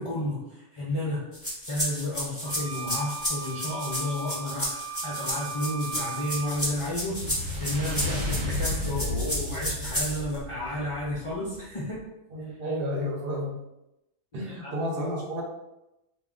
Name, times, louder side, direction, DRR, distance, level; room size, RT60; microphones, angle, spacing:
voice 1, 0.0-12.1 14.4-14.7, left 1 dB, 45° left, -7 dB, 0.4 m, -32 dB
sound 1, 1.3-10.4, equal, 15° left, 0.7 m, -32 dB
sound 2, 2.4-6.6, right 6 dB, 15° right, 0.5 m, -38 dB
sound 3, 6.4-11.7, left 2 dB, 80° right, 1.1 m, -33 dB
voice 2, 12.3-13.6 14.3-15.4, equal, 60° right, -3 dB, 0.9 m, -31 dB
2.2 x 2.1 x 3.6 m, 0.90 s
omnidirectional pair, 1.1 m